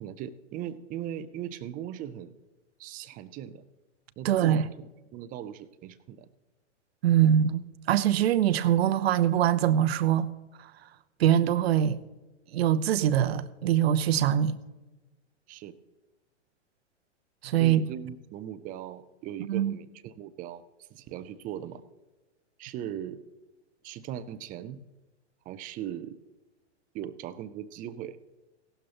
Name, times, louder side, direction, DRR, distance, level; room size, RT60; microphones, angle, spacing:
voice 1, 0.0-2.3 2.8-3.6 4.2-4.7 5.1-6.3 15.5-15.8 17.6-20.6 20.9-21.8 22.6-23.2 23.8-24.8 25.5-26.2 26.9-28.2, right 10 dB, 25° right, 0.5 m, -39 dB
voice 2, 4.2-4.7 7.0-10.3 11.2-12.0 12.5-14.6 17.4-17.8 19.5-19.8, right 10 dB, 55° right, 0.8 m, -23 dB
16.5 x 12.0 x 3.0 m
figure-of-eight pair, 105°, 36 cm